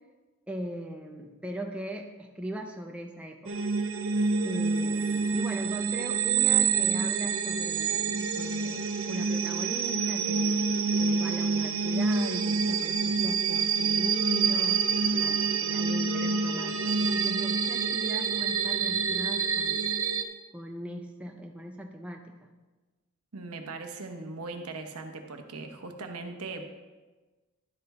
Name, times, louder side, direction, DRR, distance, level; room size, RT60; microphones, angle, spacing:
voice 1, 0.5-3.7 4.4-10.6 11.0-19.9 20.5-22.4, equal, 5° right, 2 dB, 0.5 m, -39 dB
sound 1, 3.5-20.2, right 5 dB, 60° right, 0.6 m, -27 dB
voice 2, 23.3-26.7, right 3 dB, 85° right, 5 dB, 1.0 m, -39 dB
11.5 x 5.7 x 4.2 m, 1.2 s
head